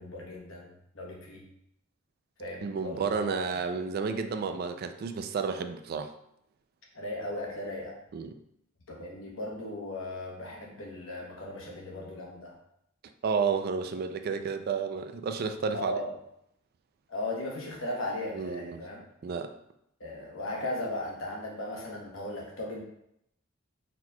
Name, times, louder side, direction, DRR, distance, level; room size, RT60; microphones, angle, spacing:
voice 1, 0.0-1.5 2.4-3.4 6.9-8.0 8.9-12.5 15.7-16.1 17.1-19.0 20.0-22.8, left 1 dB, 75° left, -1 dB, 1.0 m, -37 dB
voice 2, 2.6-6.1 8.1-8.4 13.2-15.9 18.3-18.8 19.2-19.5, right 5 dB, 50° right, 8 dB, 0.3 m, -31 dB
4.4 x 4.0 x 2.2 m, 0.78 s
head